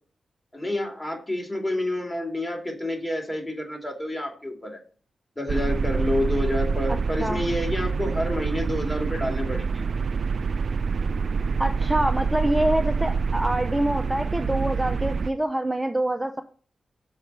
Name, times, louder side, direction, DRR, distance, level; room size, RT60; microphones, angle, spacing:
voice 1, 0.5-4.8 5.4-9.8, left 1 dB, 20° left, 3 dB, 2.7 m, -29 dB
sound 1, 5.5-15.3, right 5 dB, 65° right, 0.4 m, -26 dB
voice 2, 11.6-16.4, right 1 dB, 10° right, 5 dB, 0.8 m, -25 dB
6.3 x 4.8 x 6.7 m, 0.42 s
cardioid pair, 55°, 0 cm